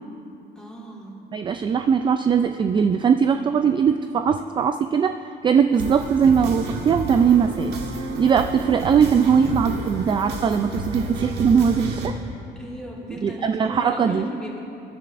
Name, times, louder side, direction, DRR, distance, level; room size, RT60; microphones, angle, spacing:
voice 1, 0.5-1.2 12.5-14.6, equal, 5° left, -5 dB, 2.9 m, -36 dB
voice 2, 1.3-7.8 8.2-12.1 13.2-14.3, right 7 dB, 30° right, 8 dB, 0.3 m, -20 dB
sound 1, 5.7-12.1, right 3 dB, 80° right, 1.5 m, -30 dB
20.5 x 11.0 x 2.6 m, 2.8 s
cardioid pair, 110°, 17 cm